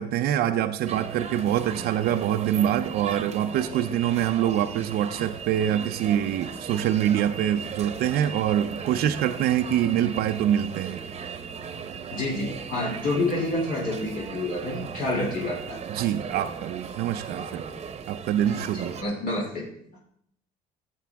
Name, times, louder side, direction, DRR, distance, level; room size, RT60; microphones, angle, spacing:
voice 1, 0.0-11.0 15.9-17.6 18.1-18.9, right 10 dB, 70° right, 6 dB, 0.6 m, -25 dB
sound 1, 0.9-19.0, right 6 dB, 40° right, 0.9 m, -37 dB
voice 2, 12.1-15.8 18.5-19.7, left 2 dB, 55° left, -3 dB, 2.7 m, -28 dB
14.5 x 7.3 x 3.5 m, 0.68 s
cardioid pair, 110°, 17 cm